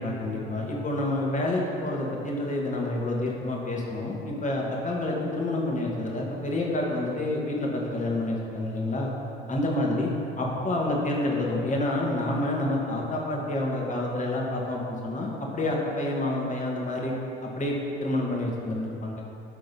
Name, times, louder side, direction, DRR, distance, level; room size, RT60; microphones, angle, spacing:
voice 1, 0.0-9.1 9.5-10.1 10.4-17.1 17.4-17.8 18.0-19.1, left 1 dB, 25° left, -2 dB, 1.8 m, -28 dB
11.5 x 3.8 x 5.4 m, 2.7 s
figure-of-eight pair, 60°, 29 cm